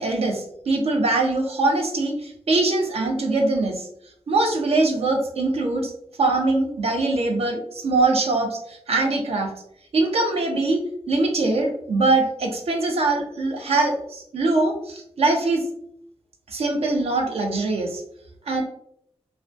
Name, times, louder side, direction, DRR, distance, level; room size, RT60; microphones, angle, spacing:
voice 1, 0.0-3.9 4.3-5.9 6.2-9.5 9.9-15.6 16.5-18.0 18.5-18.6, right 2 dB, 70° right, 2 dB, 0.5 m, -22 dB
2.2 x 2.2 x 2.5 m, 0.72 s
wide cardioid pair, 95°, 11 cm